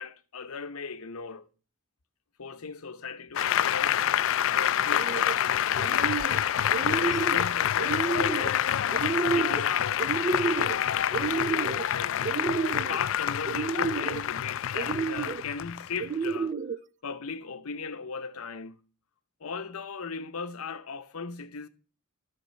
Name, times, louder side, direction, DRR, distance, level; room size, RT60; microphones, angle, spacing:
voice 1, 0.0-1.5 2.4-4.0 4.4-6.2 6.8-8.7 9.3-12.4 12.9-16.5 17.0-18.8 19.4-21.7, left 5 dB, 85° left, 0.8 m, -38 dB
Applause, 3.3-16.3, left 10 dB, 65° left, 0.3 m, -27 dB
sound 1, 4.9-5.4 5.8-6.4 6.7-7.4 7.8-8.5 8.9-9.6 10.0-10.8 11.1-11.8 12.2-13.0 13.5-14.2 14.7-15.4 16.0-16.8, right 5 dB, 35° right, 0.4 m, -30 dB
12.0 x 6.1 x 4.4 m
head